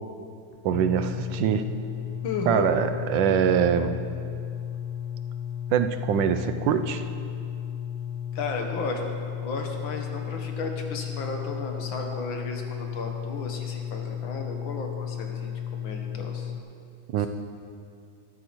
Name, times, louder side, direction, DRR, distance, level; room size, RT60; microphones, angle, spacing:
voice 1, 0.6-1.6 2.5-3.9 5.7-7.0 17.1-17.3, right 8 dB, 80° right, 9 dB, 1.3 m, -23 dB
sound 1, 0.7-16.6, left 9 dB, 65° left, 1.3 m, -34 dB
voice 2, 2.2-2.7 8.3-9.0 9.4-16.5 17.2-17.3, left 3 dB, 80° left, 3 dB, 1.9 m, -34 dB
13.5 x 12.5 x 3.1 m, 2.4 s
omnidirectional pair, 2.1 m